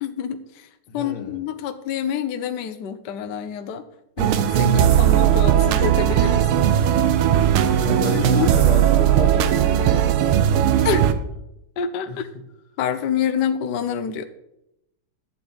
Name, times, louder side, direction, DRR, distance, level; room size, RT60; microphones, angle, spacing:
voice 1, 0.0-0.7 0.9-3.8 4.2-6.5 8.0-8.5 10.8-11.1 11.8-12.3 12.8-14.3, left 8 dB, 65° left, 9 dB, 1.2 m, -27 dB
voice 2, 0.9-1.4 7.7-10.9 12.1-12.2, left 5 dB, 85° left, 5 dB, 2.1 m, -33 dB
sound 1, 4.2-11.1, right 10 dB, 90° right, 1.6 m, -18 dB
11.5 x 8.6 x 4.0 m, 0.84 s
omnidirectional pair, 2.3 m